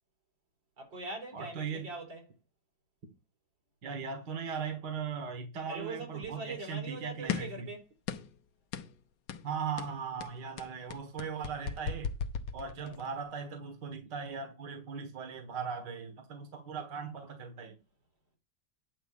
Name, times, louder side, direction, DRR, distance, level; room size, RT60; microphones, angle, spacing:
voice 1, 0.8-2.2 5.7-7.8 12.8-13.0, right 3 dB, 85° right, 4.4 m, -42 dB
voice 2, 1.3-1.9 3.8-7.7 9.4-12.1 12.5-17.8, right 6 dB, 70° right, 2.1 m, -38 dB
sound 1, 7.3-7.6 8.1-8.4 8.7-8.9 9.3-9.5 9.8-13.1, left 7 dB, 75° left, 1.5 m, -37 dB
10.0 x 3.9 x 7.0 m
omnidirectional pair, 2.0 m